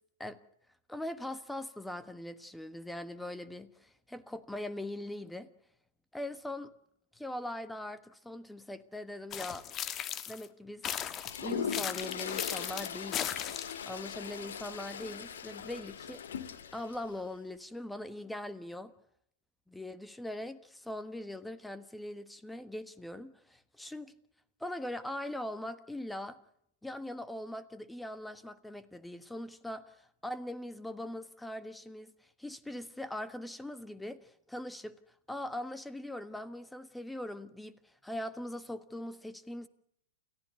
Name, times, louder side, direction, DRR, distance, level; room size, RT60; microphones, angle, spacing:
voice 1, 0.9-5.5 6.1-6.7 7.1-9.6 10.3-16.2 16.7-18.9 19.7-24.1 24.6-26.4 26.8-29.8 30.2-35.0 35.3-39.7, left 1 dB, 5° left, 14 dB, 1.3 m, -41 dB
sound 1, 9.3-10.5 10.8-13.8, left 10 dB, 30° left, 1.4 m, -37 dB
Toilet flush, 11.2-17.0, left 7 dB, 65° left, 2.3 m, -40 dB
29.0 x 14.5 x 7.9 m, 0.72 s
figure-of-eight pair, 105°, 0 cm